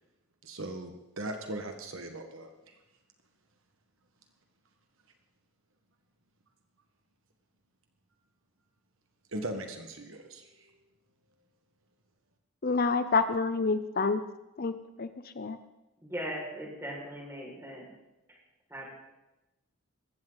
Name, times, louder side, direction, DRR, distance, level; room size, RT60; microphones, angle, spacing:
voice 1, 0.4-2.7 9.3-10.7, right 1 dB, 60° right, 5 dB, 1.5 m, -39 dB
voice 2, 12.6-14.2 14.6-15.6, left 4 dB, 40° left, 11 dB, 0.6 m, -28 dB
voice 3, 16.0-17.9 18.7-18.9, equal, 10° right, -3 dB, 5.5 m, -39 dB
21.0 x 16.0 x 4.0 m, 0.98 s
head